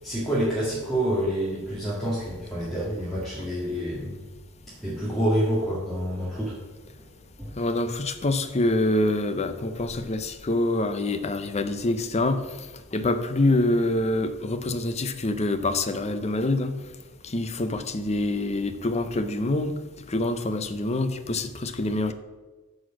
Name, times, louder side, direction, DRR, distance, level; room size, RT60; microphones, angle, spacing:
voice 1, 0.0-4.2 4.8-6.6 7.4-7.5, equal, ahead, -9 dB, 1.9 m, -27 dB
voice 2, 7.6-12.5 12.9-16.7 17.2-19.8 20.1-22.1, left 2 dB, 30° left, 10 dB, 0.6 m, -25 dB
9.4 x 4.3 x 7.3 m, 1.3 s
head